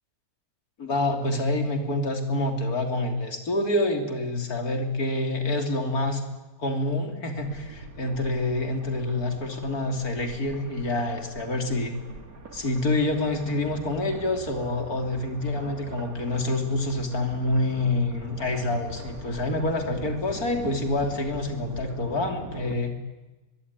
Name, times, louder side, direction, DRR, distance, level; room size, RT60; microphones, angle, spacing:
voice 1, 0.8-6.2 6.6-12.0 12.5-22.9, left 2 dB, 75° left, 5 dB, 3.6 m, -27 dB
sound 1, 7.4-22.8, right 1 dB, 70° right, 3.1 m, -42 dB
23.0 x 22.5 x 9.7 m, 1.1 s
omnidirectional pair, 1.6 m